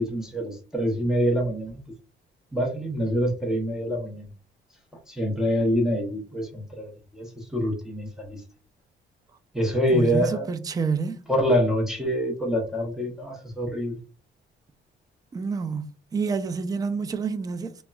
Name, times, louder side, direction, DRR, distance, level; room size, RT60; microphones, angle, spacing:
voice 1, 0.0-1.8 2.5-4.3 5.1-8.4 9.5-10.5 11.3-14.0, equal, 5° right, 0.7 m, -26 dB
voice 2, 9.9-11.2 15.3-15.9 16.1-17.7, right 5 dB, 20° right, 0.3 m, -28 dB
3.6 x 2.1 x 2.2 m
cardioid pair, 90°, 20 cm